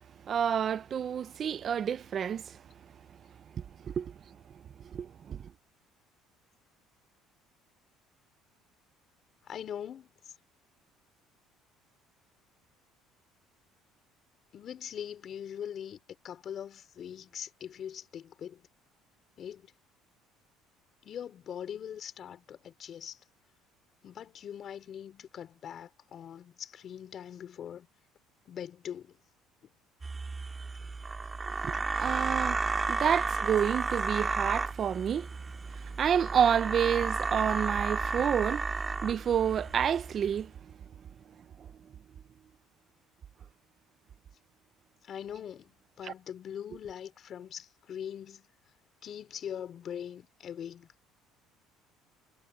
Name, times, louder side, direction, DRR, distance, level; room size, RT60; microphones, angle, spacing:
voice 1, 0.3-2.6 3.9-4.1 4.9-5.4 31.6-35.3 35.7-40.5 46.0-46.1, right 8 dB, 40° right, 0.6 m, -29 dB
voice 2, 9.4-10.1 14.5-18.7 19.4-19.7 21.0-23.2 24.0-27.9 28.5-29.2 30.8-30.9 45.0-48.5 49.0-50.9, left 9 dB, 45° left, 4.0 m, -42 dB
sound 1, 30.0-40.2, right 4 dB, 20° right, 2.0 m, -33 dB
cardioid pair, 125°, 0 cm